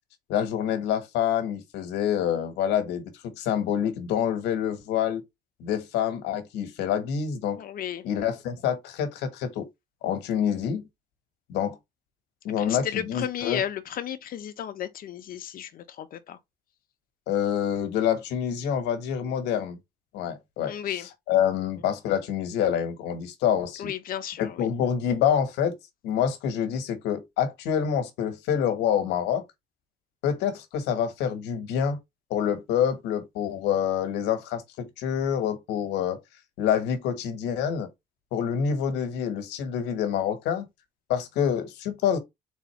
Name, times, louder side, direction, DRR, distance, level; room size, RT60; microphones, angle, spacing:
voice 1, 0.3-5.2 5.6-7.6 8.0-9.7 10.0-10.8 11.5-11.8 12.4-13.6 17.3-19.8 20.1-20.7 21.3-23.9 24.4-25.7 26.0-29.4 30.2-32.0 32.3-36.2 36.6-37.9 38.3-40.7 41.1-42.2, left 8 dB, 90° left, 1.4 m, -27 dB
voice 2, 7.5-8.1 12.6-16.4 20.7-21.1 23.8-24.7, left 10 dB, 60° left, 1.0 m, -33 dB
4.1 x 3.7 x 3.1 m
cardioid pair, 110°, 17 cm